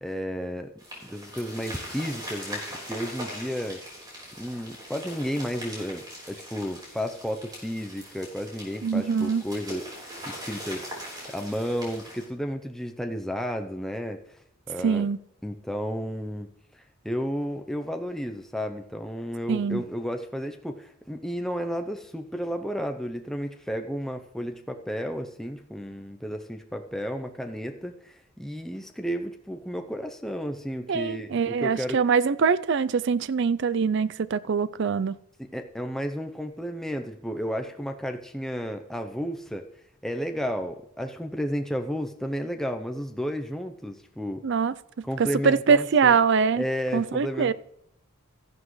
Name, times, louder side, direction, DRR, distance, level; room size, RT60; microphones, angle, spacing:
voice 1, 0.0-0.7 1.0-3.8 4.4-11.0 11.3-14.4 14.7-15.1 15.4-16.5 16.7-32.0 35.4-39.7 40.0-44.4 45.0-46.2 46.6-47.5, equal, ahead, 0.6 m, -32 dB
sound 1, 0.8-12.2, equal, 20° right, 3.9 m, -41 dB
voice 2, 8.8-9.4 14.8-15.2 19.5-19.8 30.9-35.2 44.4-44.7 45.2-46.6 46.9-47.5, right 6 dB, 55° right, 0.4 m, -23 dB
13.5 x 11.0 x 3.2 m
head